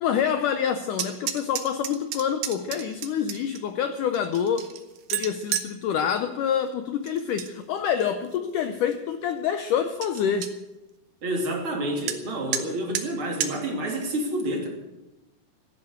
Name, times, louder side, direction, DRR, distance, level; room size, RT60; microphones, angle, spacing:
voice 1, 0.0-4.7 5.1-10.6, left 8 dB, 80° left, 9 dB, 1.8 m, -27 dB
sound 1, 0.9-3.6 4.1-5.7 7.1-7.5 7.9-8.4 8.9-9.0 9.3-9.4 9.7-9.8 10.0-10.5 12.1-12.2 12.5-12.6 13.0-13.1 13.4-13.5, right 10 dB, 65° right, 2.4 m, -31 dB
voice 2, 11.2-14.7, right 1 dB, 35° right, 1 dB, 3.2 m, -29 dB
15.5 x 10.5 x 8.0 m, 1.0 s
omnidirectional pair, 4.7 m